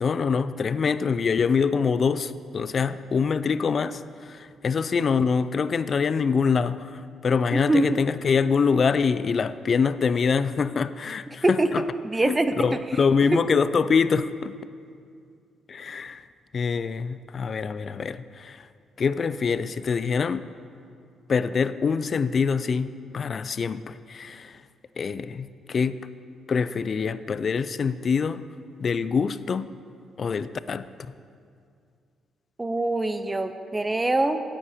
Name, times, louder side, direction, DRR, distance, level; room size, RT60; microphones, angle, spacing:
voice 1, 0.0-11.8 12.2-14.5 15.7-16.2 16.5-18.6 19.0-20.4 21.3-24.6 25.0-26.0 26.5-28.4 28.8-29.7 30.2-30.9, left 5 dB, 45° left, 15 dB, 0.3 m, -25 dB
voice 2, 7.5-8.0 11.4-11.7 12.0-12.6 13.3-13.4 32.6-34.4, right 2 dB, 15° right, 9 dB, 0.5 m, -23 dB
9.5 x 8.4 x 5.0 m, 2.3 s
cardioid pair, 90°, 0 cm